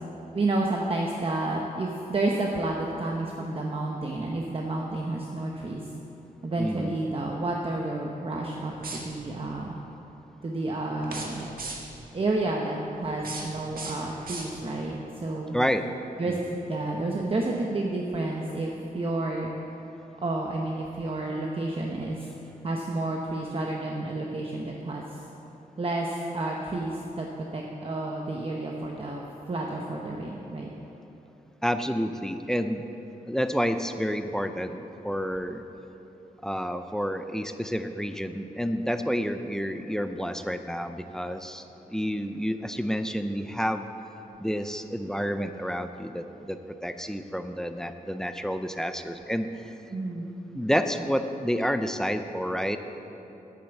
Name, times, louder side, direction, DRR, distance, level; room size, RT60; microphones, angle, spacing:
voice 1, 0.3-5.8 6.4-9.8 10.4-11.5 12.1-15.6 16.2-16.4 16.7-19.5 20.2-22.3 22.6-25.2 25.8-27.3 27.5-30.7 49.9-50.3, right 2 dB, 40° right, -1 dB, 0.9 m, -30 dB
voice 2, 6.6-7.0 15.5-15.9 16.3-16.5 31.6-32.8 33.3-34.8 35.0-35.6 36.4-43.8 44.4-49.7 50.5-52.8, equal, 5° left, 8 dB, 0.5 m, -29 dB
sound 1, 8.7-9.4 11.0-12.1 13.0-14.9, right 3 dB, 75° right, 1.6 m, -39 dB
10.5 x 8.6 x 7.0 m, 3.0 s
wide cardioid pair, 130°, 15 cm